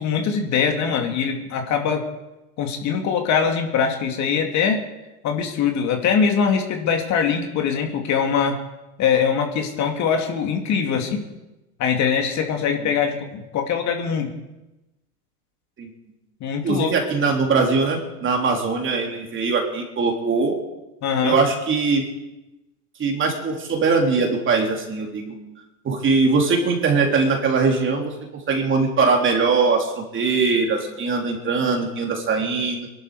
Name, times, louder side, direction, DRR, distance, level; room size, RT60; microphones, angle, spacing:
voice 1, 0.0-2.0 2.6-4.8 5.2-8.6 9.0-11.2 11.8-14.3 16.4-16.9 21.0-21.4, left 6 dB, 35° left, 3 dB, 2.6 m, -22 dB
voice 2, 16.6-20.5 21.2-22.1 23.0-25.3 25.8-32.9, right 4 dB, 25° right, 2 dB, 3.4 m, -21 dB
22.0 x 12.0 x 5.0 m, 1.0 s
hypercardioid pair, 115°, 46 cm